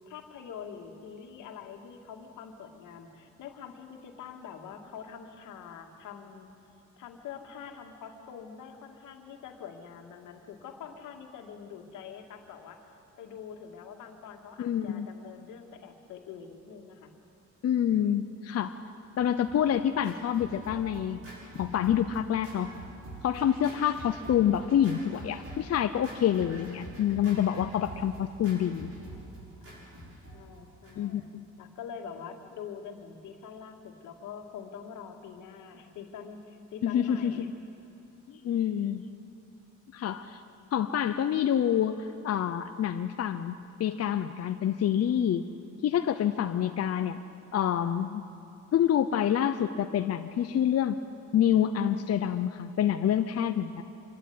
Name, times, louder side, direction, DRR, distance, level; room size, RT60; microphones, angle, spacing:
voice 1, 0.1-6.5 7.0-12.8 13.2-17.1 29.6-31.2 31.6-37.5, left 7 dB, 90° left, 4 dB, 2.2 m, -45 dB
voice 2, 14.6-15.1 17.6-18.8 19.2-21.2 21.6-22.7 23.2-28.9 31.0-31.2 36.8-37.5 38.3-39.0 39.9-40.4 40.7-43.5 43.8-45.4 45.8-47.2 47.5-48.2 48.7-51.0 51.3-53.8, left 9 dB, 55° left, 8 dB, 0.8 m, -27 dB
Scratching (performance technique), 19.1-31.2, right 1 dB, 50° right, 7.1 m, -46 dB
26.0 x 12.0 x 9.6 m, 3.0 s
cardioid pair, 90°, 30 cm